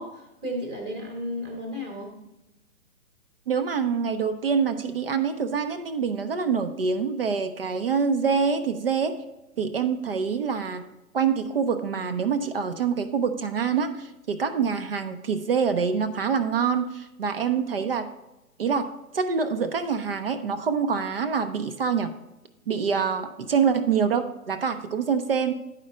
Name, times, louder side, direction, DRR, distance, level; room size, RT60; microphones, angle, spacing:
voice 1, 0.0-2.2, equal, 10° right, 2 dB, 1.1 m, -34 dB
voice 2, 3.5-9.2 9.6-10.8 11.1-18.1 18.6-22.1 22.7-25.5, right 6 dB, 40° right, 9 dB, 0.6 m, -25 dB
10.5 x 4.4 x 5.0 m, 0.97 s
figure-of-eight pair, 140°, 44 cm